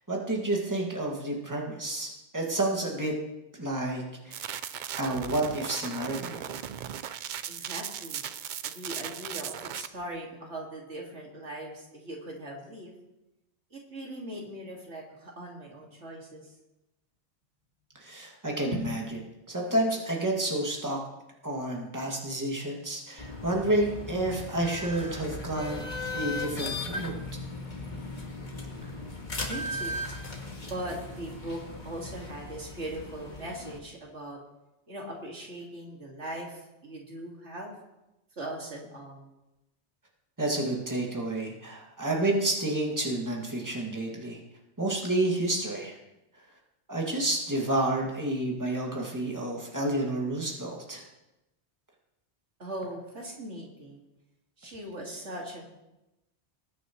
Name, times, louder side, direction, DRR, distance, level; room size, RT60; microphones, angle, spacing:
voice 1, 0.1-3.1 3.6-4.5 5.0-6.4 18.0-19.0 19.5-21.0 21.4-25.8 26.1-27.1 40.4-44.4 44.8-46.0 46.9-51.0, right 1 dB, 15° right, -2 dB, 2.2 m, -30 dB
sound 1, 4.3-9.9, right 9 dB, 60° right, 0.5 m, -37 dB
voice 2, 7.5-8.2 8.6-13.0 13.7-16.5 18.7-18.9 28.6-29.2 29.5-30.0 30.6-34.4 34.9-37.7 38.4-39.3 52.6-54.0 54.6-55.6, right 1 dB, 80° right, -1 dB, 2.5 m, -40 dB
sound 2, 23.2-33.8, left 2 dB, 40° left, 1.7 m, -37 dB
20.5 x 9.0 x 3.1 m, 0.94 s
omnidirectional pair, 1.2 m